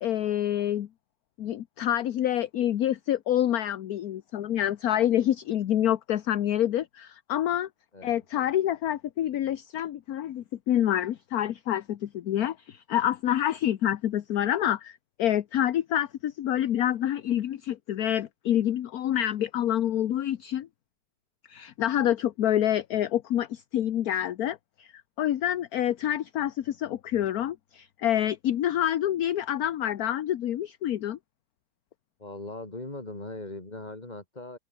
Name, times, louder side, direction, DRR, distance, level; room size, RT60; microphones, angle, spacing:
voice 1, 0.0-0.9 1.4-7.7 8.0-20.7 21.5-24.9 25.2-31.2, left 11 dB, 60° left, 1.2 m, -27 dB
voice 2, 7.9-8.2 32.2-34.6, left 2 dB, 25° left, 3.5 m, -39 dB
open air
omnidirectional pair, 1.9 m